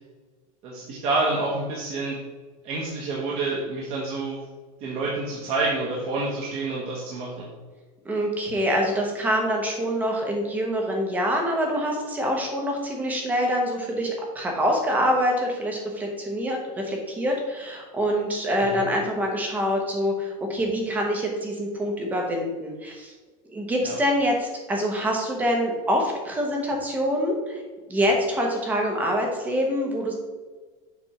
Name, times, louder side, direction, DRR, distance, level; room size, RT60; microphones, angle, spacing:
voice 1, 0.6-2.2 2.6-4.4 4.8-7.5 23.8-23.9, right 3 dB, 30° right, -5 dB, 1.2 m, -28 dB
voice 2, 8.0-23.1 23.5-27.6 27.9-30.2, equal, 10° right, 1 dB, 0.9 m, -25 dB
7.1 x 3.5 x 5.7 m, 1.3 s
supercardioid pair, 180°, 18 cm